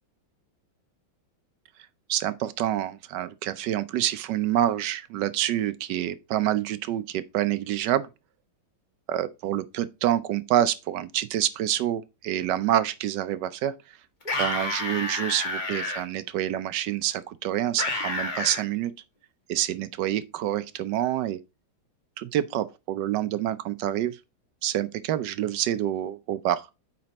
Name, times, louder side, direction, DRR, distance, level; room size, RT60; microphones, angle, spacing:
voice 1, 2.1-8.1 9.1-14.0 14.4-18.9 19.5-21.4 22.2-24.2 24.6-26.7, right 12 dB, 70° right, 1.1 m, -27 dB
sound 1, 14.2-16.0 17.8-18.6, left 2 dB, 25° left, 1.5 m, -29 dB
8.7 x 4.3 x 4.0 m
omnidirectional pair, 2.2 m